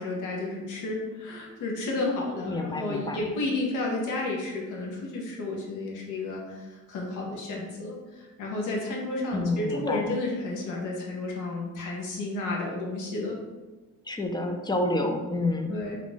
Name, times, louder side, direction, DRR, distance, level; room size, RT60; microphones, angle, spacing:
voice 1, 0.0-13.4 15.7-16.0, left 2 dB, 90° left, -1 dB, 0.8 m, -32 dB
voice 2, 2.4-3.2 9.3-10.1 14.1-15.8, left 2 dB, 15° left, 4 dB, 0.4 m, -28 dB
3.0 x 2.4 x 3.9 m, 1.2 s
cardioid pair, 90°, 30 cm